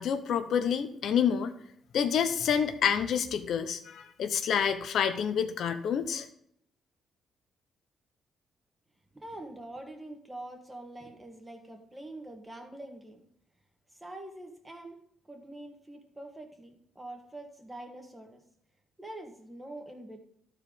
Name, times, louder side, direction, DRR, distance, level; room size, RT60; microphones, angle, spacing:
voice 1, 0.0-1.5 1.9-6.3, left 7 dB, 70° left, 8 dB, 0.7 m, -28 dB
voice 2, 9.1-13.3 13.9-15.0 15.3-18.4 19.0-20.2, right 1 dB, 15° right, 3 dB, 1.8 m, -45 dB
12.0 x 4.6 x 5.2 m, 0.70 s
cardioid pair, 90°, 0 cm